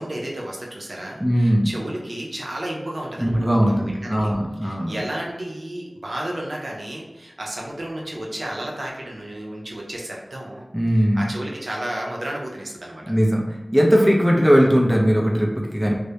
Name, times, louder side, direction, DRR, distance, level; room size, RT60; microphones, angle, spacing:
voice 1, 0.0-4.3 4.6-10.7 10.9-13.1 14.4-14.5, right 1 dB, 65° right, -2 dB, 0.5 m, -32 dB
voice 2, 1.2-1.7 3.2-5.0 10.7-11.2 13.1-13.4 13.7-16.0, equal, 10° right, -2 dB, 0.5 m, -19 dB
2.2 x 2.1 x 2.8 m, 1.1 s
wide cardioid pair, 50°, 0 cm